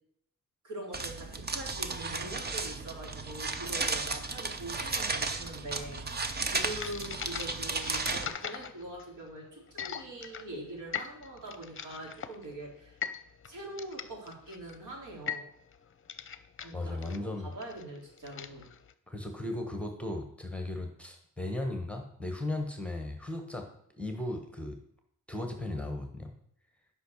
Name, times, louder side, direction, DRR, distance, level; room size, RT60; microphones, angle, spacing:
voice 1, 0.6-13.0 13.5-15.5 16.6-18.7, right 1 dB, 75° right, -1 dB, 3.7 m, -43 dB
sound 1, 0.9-8.3, right 3 dB, 30° right, 0.8 m, -34 dB
sound 2, 6.7-18.9, left 8 dB, 40° left, 0.6 m, -41 dB
voice 2, 16.7-17.5 19.1-23.6 24.0-24.8 25.3-26.3, left 2 dB, 5° left, 3 dB, 1.2 m, -36 dB
11.5 x 5.6 x 6.6 m, 0.68 s
wide cardioid pair, 170°, 31 cm